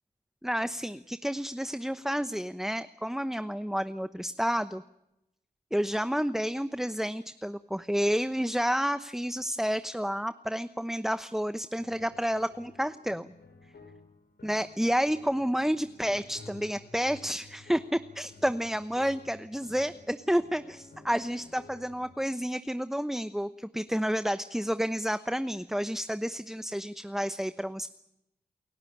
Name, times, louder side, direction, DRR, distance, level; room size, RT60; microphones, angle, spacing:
voice 1, 0.4-4.8 5.7-13.3 14.4-27.9, equal, ahead, 11 dB, 1.0 m, -30 dB
sound 1, 11.8-22.2, left 3 dB, 80° left, 6.4 m, -53 dB
29.0 x 16.0 x 8.7 m, 0.87 s
cardioid pair, 45°, 17 cm